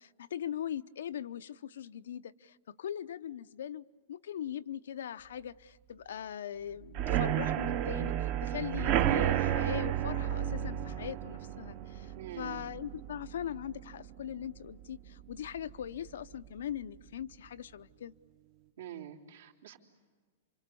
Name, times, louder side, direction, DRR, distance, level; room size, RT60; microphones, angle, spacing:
voice 1, 0.0-18.1, left 10 dB, 75° left, 0.7 m, -41 dB
sound 1, 6.9-14.6 14.9-15.3 15.6-15.7 16.1-16.2, right 11 dB, 30° right, 0.8 m, -32 dB
voice 2, 12.2-12.6 18.8-19.8, right 11 dB, 75° right, 3.3 m, -45 dB
30.0 x 26.0 x 6.9 m
supercardioid pair, 170°, 0 cm